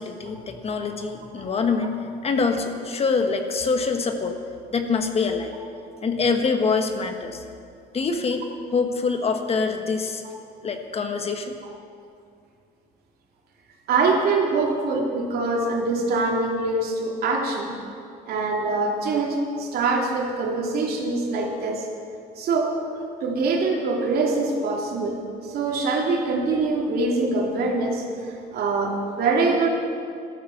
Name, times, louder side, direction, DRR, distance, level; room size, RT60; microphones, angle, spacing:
voice 1, 0.0-4.4 4.7-5.6 6.0-7.4 7.9-8.5 8.7-10.2 10.6-11.6, left 4 dB, 35° left, 6 dB, 1.3 m, -25 dB
voice 2, 13.9-17.8 18.3-21.9 22.4-22.8 23.2-29.7, right 3 dB, 65° right, -1 dB, 2.9 m, -24 dB
13.0 x 12.5 x 7.3 m, 2.3 s
cardioid pair, 110°, 17 cm